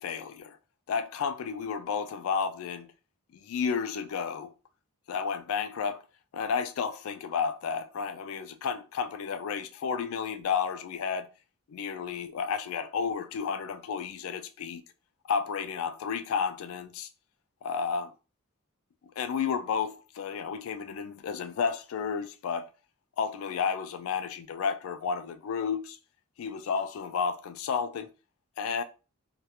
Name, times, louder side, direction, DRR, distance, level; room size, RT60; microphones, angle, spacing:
voice 1, 0.0-0.6 0.9-2.9 3.3-4.5 5.1-6.0 6.3-11.3 11.7-14.8 15.2-17.1 17.6-18.1 19.2-22.7 23.2-26.0 26.4-28.1 28.6-28.8, left 6 dB, 70° left, 0.3 m, -32 dB
2.3 x 2.1 x 2.8 m
head